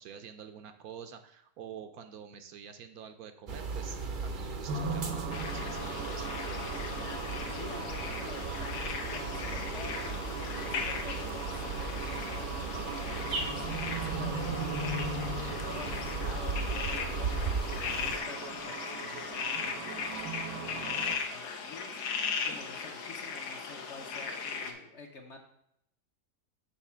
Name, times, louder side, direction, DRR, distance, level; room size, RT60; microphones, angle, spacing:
voice 1, 0.0-6.8, right 8 dB, 70° right, 8 dB, 1.0 m, -48 dB
sound 1, 3.5-18.2, right 4 dB, 50° right, 0.6 m, -37 dB
sound 2, 4.7-21.2, right 3 dB, 90° right, 1.7 m, -39 dB
sound 3, 5.3-24.7, left 5 dB, 85° left, 1.5 m, -38 dB
voice 2, 7.5-25.4, left 4 dB, 50° left, 2 dB, 1.2 m, -49 dB
7.2 x 4.1 x 5.6 m, 0.73 s
omnidirectional pair, 1.7 m